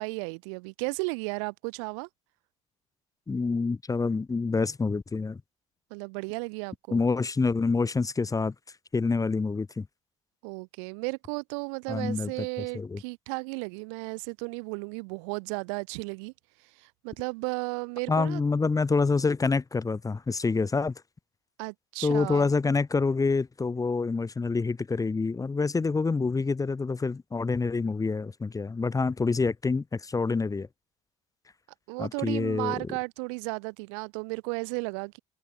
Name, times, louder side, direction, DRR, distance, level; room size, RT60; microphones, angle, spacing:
voice 1, 0.0-2.1 5.9-7.0 10.4-16.3 16.8-18.4 21.6-22.5 31.9-35.2, right 34 dB, 65° right, 0.7 m, -34 dB
voice 2, 3.3-5.4 6.9-8.5 8.9-9.9 11.9-12.3 12.7-13.0 18.1-20.9 22.0-30.7 32.0-32.8, left 4 dB, 20° left, 1.4 m, -27 dB
figure-of-eight pair, 55°, 17 cm